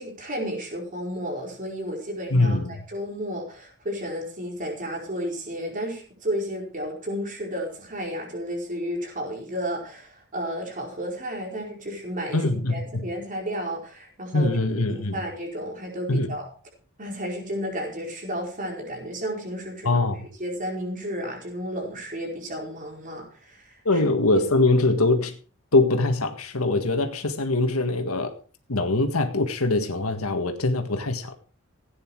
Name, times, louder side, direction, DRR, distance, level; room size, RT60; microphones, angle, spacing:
voice 1, 0.0-2.6 2.9-12.4 12.7-14.5 14.9-16.5 17.0-20.0 20.4-24.0, equal, 40° right, 0 dB, 4.7 m, -32 dB
voice 2, 2.3-2.8 12.3-13.1 14.3-15.2 16.1-16.4 19.8-20.3 23.9-25.3 25.7-28.4 28.7-31.3, left 2 dB, 75° left, 6 dB, 1.8 m, -23 dB
16.5 x 9.7 x 4.7 m, 0.40 s
head